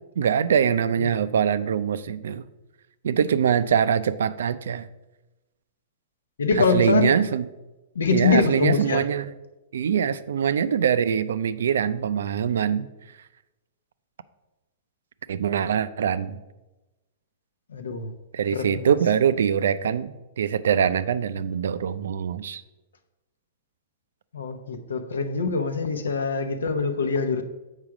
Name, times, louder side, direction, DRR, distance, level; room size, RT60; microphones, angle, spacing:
voice 1, 0.2-2.4 3.0-4.9 6.5-7.5 8.1-9.3 9.7-12.9 15.3-16.4 18.3-22.6, right 8 dB, 75° right, 15 dB, 0.4 m, -23 dB
voice 2, 6.4-7.1 8.0-9.0 17.7-18.1 18.5-18.8 24.3-27.4, left 5 dB, 85° left, 8 dB, 0.8 m, -24 dB
7.4 x 4.8 x 4.8 m, 1.1 s
hypercardioid pair, 125°, 0 cm